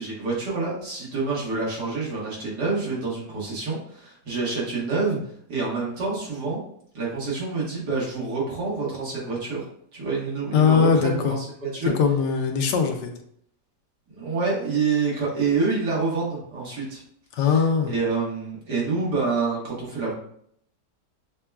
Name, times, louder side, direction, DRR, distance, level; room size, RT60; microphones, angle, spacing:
voice 1, 0.0-5.2 5.5-6.6 6.9-9.6 9.9-11.9 14.1-17.0 17.4-20.1, right 4 dB, 70° right, -5 dB, 1.9 m, -27 dB
voice 2, 10.5-11.3 12.0-13.1 17.3-17.9, left 6 dB, 80° left, 4 dB, 1.2 m, -20 dB
6.4 x 2.2 x 2.3 m, 0.66 s
omnidirectional pair, 1.8 m